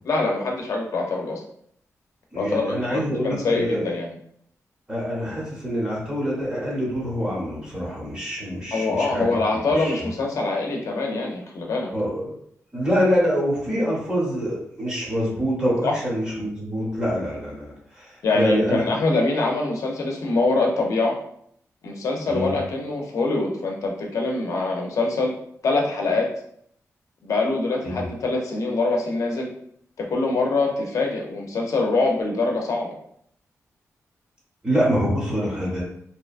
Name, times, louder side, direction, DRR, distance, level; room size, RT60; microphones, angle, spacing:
voice 1, 0.0-1.4 2.4-2.6 2.9-4.1 8.7-11.9 15.8-15.9 18.2-21.2 21.8-25.3 25.6-26.3 27.2-29.5 30.0-32.9, left 3 dB, 70° left, 0 dB, 0.5 m, -24 dB
voice 2, 2.3-3.9 4.9-9.4 9.7-10.1 11.9-12.3 12.7-18.8 22.3-22.6 27.8-28.1 34.6-35.8, equal, 15° right, -6 dB, 0.8 m, -25 dB
2.7 x 2.2 x 2.4 m, 0.68 s
wide cardioid pair, 160°, 6 cm